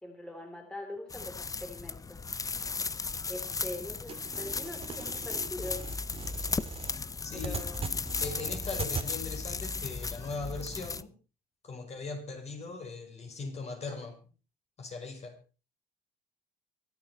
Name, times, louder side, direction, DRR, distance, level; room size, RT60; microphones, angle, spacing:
voice 1, 0.0-2.2 3.3-5.9 7.3-7.9, left 1 dB, 5° left, 3.2 m, -42 dB
sound 1, 1.1-11.0, left 4 dB, 20° left, 0.6 m, -36 dB
sound 2, 4.1-9.1, right 5 dB, 35° right, 2.4 m, -40 dB
voice 2, 7.2-7.6 8.2-11.2 11.6-14.2 14.8-15.4, left 3 dB, 40° left, 5.3 m, -39 dB
24.5 x 8.9 x 4.3 m
cardioid pair, 110°, 17 cm